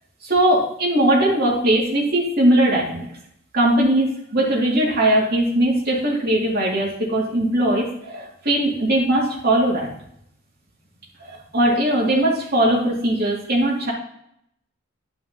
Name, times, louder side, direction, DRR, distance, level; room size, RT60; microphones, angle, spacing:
voice 1, 0.2-3.0 3.5-9.9 11.2-13.9, right 1 dB, 50° right, -3 dB, 2.6 m, -20 dB
12.0 x 5.4 x 2.9 m, 0.74 s
head